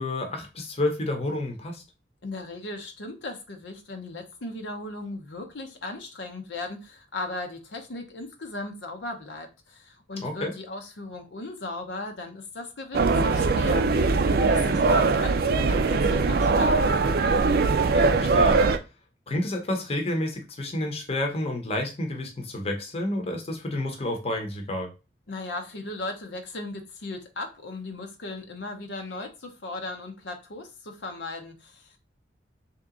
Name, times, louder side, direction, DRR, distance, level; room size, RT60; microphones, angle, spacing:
voice 1, 0.0-1.8 10.2-10.5 14.7-14.9 17.7-18.7 19.3-24.9, left 1 dB, 35° left, 3 dB, 0.9 m, -30 dB
voice 2, 2.2-17.0 25.3-32.0, left 2 dB, 80° left, 4 dB, 0.8 m, -37 dB
sound 1, 12.9-18.8, right 3 dB, 55° right, 0.4 m, -21 dB
3.6 x 2.8 x 3.7 m, 0.28 s
head